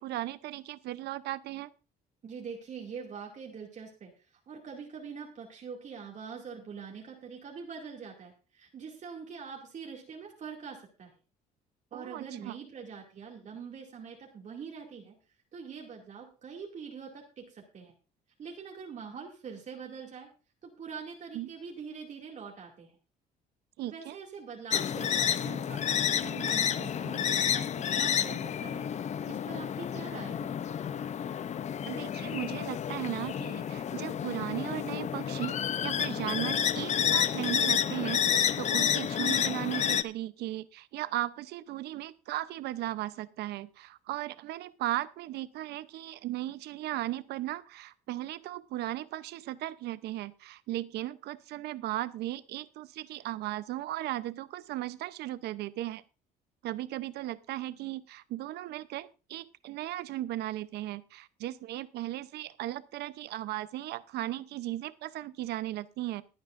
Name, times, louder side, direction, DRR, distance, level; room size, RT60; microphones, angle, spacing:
voice 1, 0.0-1.7 11.9-12.6 21.3-21.5 23.8-24.2 31.8-35.6 35.8-56.0 56.6-66.2, right 15 dB, 75° right, 15 dB, 0.8 m, -36 dB
voice 2, 2.2-11.1 11.9-15.2 15.5-17.9 18.4-20.3 20.6-22.9 23.8-28.9 29.3-30.5, right 6 dB, 45° right, -1 dB, 2.4 m, -44 dB
sound 1, 24.7-40.0, left 9 dB, 45° left, 0.7 m, -30 dB
21.5 x 9.3 x 2.6 m, 0.32 s
cardioid pair, 110°, 17 cm